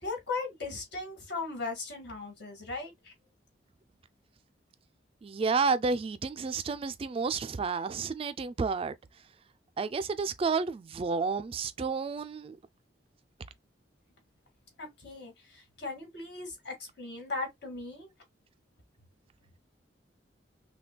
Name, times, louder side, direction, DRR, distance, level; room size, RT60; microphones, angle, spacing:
voice 1, 0.0-3.1 14.8-18.1, left 3 dB, 65° left, 2.0 m, -38 dB
voice 2, 5.2-9.0 9.8-12.6, right 4 dB, 30° right, 0.3 m, -31 dB
5.8 x 2.2 x 2.2 m
head